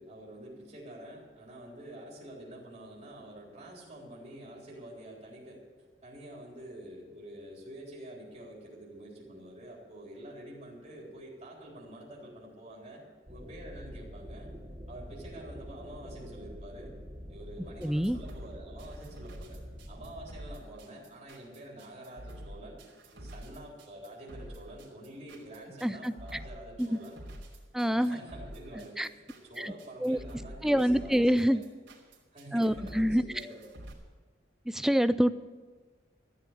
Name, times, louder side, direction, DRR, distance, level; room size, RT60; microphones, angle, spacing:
voice 1, 0.0-5.6 6.0-13.0 13.3-14.5 14.9-17.0 17.3-19.6 19.9-22.8 23.1-27.2 27.8-31.6 32.3-33.7, right 1 dB, 35° right, -3 dB, 3.8 m, -47 dB
sound 1, 13.3-20.4, equal, 20° right, 1.3 m, -46 dB
voice 2, 17.8-18.2 25.8-26.1 26.8-27.0 27.7-28.2 29.0-29.1 29.6-29.7 30.0-30.2 30.6-31.6 32.5-33.2 34.7-35.3, equal, ahead, 12 dB, 0.3 m, -26 dB
sound 2, 17.8-33.9, right 1 dB, 75° right, 3.2 m, -47 dB
14.0 x 8.3 x 8.0 m, 1.4 s
head